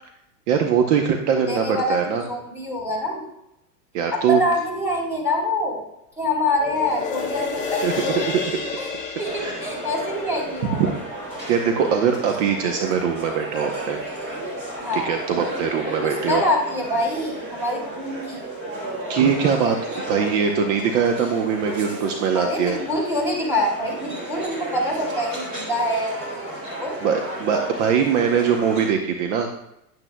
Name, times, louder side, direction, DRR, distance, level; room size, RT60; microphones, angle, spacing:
voice 1, 0.5-2.2 3.9-4.4 7.8-8.4 9.4-9.6 10.8-10.9 11.5-14.0 14.9-16.4 19.1-22.8 27.0-29.5, right 7 dB, 50° right, 4 dB, 0.9 m, -22 dB
voice 2, 1.5-3.2 4.1-5.8 6.2-8.3 8.8-8.9 9.2-10.8 14.8-15.1 15.8-18.5 22.3-26.5 26.8-27.0, left 1 dB, 5° right, -4 dB, 3.0 m, -25 dB
sound 1, 6.5-13.1 13.5-13.6, left 5 dB, 15° left, 1.6 m, -32 dB
sound 2, 9.2-28.9, right 1 dB, 25° right, 3.3 m, -33 dB
10.5 x 8.6 x 2.3 m, 0.84 s
supercardioid pair, 145°, 47 cm